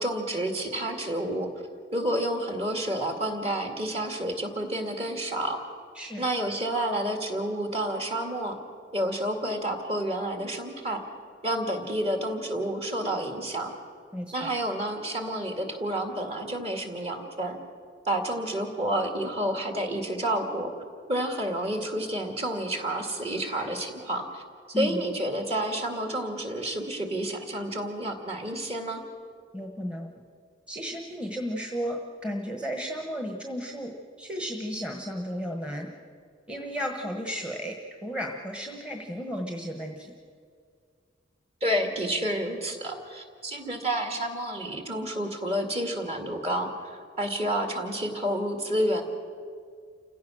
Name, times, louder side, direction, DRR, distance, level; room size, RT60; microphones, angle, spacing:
voice 1, 0.0-1.5 1.9-5.6 6.2-8.6 8.9-11.0 11.4-13.7 14.3-17.6 18.0-20.7 21.1-24.4 24.7-29.0 41.6-49.0, right 1 dB, 30° right, 4 dB, 2.2 m, -29 dB
voice 2, 14.1-14.5 24.7-25.0 29.5-30.1 30.7-35.9 36.5-37.8 38.0-40.1, equal, 5° right, 2 dB, 1.3 m, -34 dB
29.0 x 16.5 x 6.3 m, 2.1 s
head